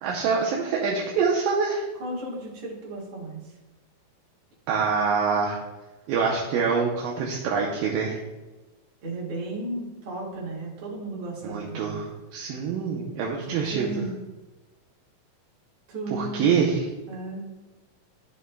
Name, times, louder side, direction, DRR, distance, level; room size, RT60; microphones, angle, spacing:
voice 1, 0.0-1.8 4.7-5.6 6.1-8.2 11.4-13.9 16.1-16.8, right 5 dB, 80° right, -2 dB, 2.4 m, -25 dB
voice 2, 2.0-3.6 9.0-12.0 13.4-14.1 15.9-16.6 17.1-17.5, right 2 dB, 60° right, -6 dB, 3.1 m, -34 dB
12.5 x 5.4 x 2.2 m, 1.1 s
omnidirectional pair, 4.1 m